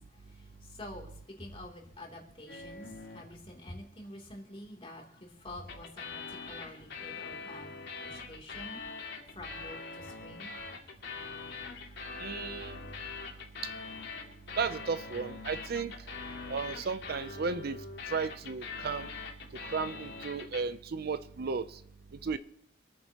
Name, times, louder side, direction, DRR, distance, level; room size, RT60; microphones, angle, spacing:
voice 1, 0.2-7.7 8.0-8.8 9.3-10.5, left 1 dB, 30° left, 2.9 m, -48 dB
sound 1, 2.5-3.4 5.7-20.6, left 4 dB, 60° left, 2.2 m, -43 dB
voice 2, 12.2-12.8 13.6-13.7 14.6-15.9 16.5-17.8 18.1-19.1 19.7-21.8 22.2-22.4, right 5 dB, 50° right, 0.5 m, -34 dB
27.0 x 9.4 x 2.9 m
head